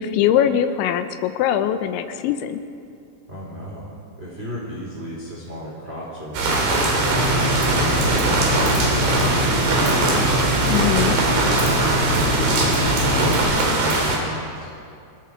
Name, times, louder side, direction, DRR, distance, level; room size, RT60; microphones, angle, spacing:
voice 1, 0.0-2.6 10.7-11.1, left 10 dB, 85° left, 8 dB, 3.3 m, -21 dB
voice 2, 3.3-7.3 7.7-9.9 10.6-12.6 12.9-14.7, equal, 15° right, -5 dB, 3.2 m, -35 dB
sound 1, 6.3-14.2, right 2 dB, 70° right, 5.4 m, -21 dB
sound 2, 7.0-13.4, equal, 30° right, 3.8 m, -24 dB
27.0 x 21.0 x 4.7 m, 2.5 s
omnidirectional pair, 5.2 m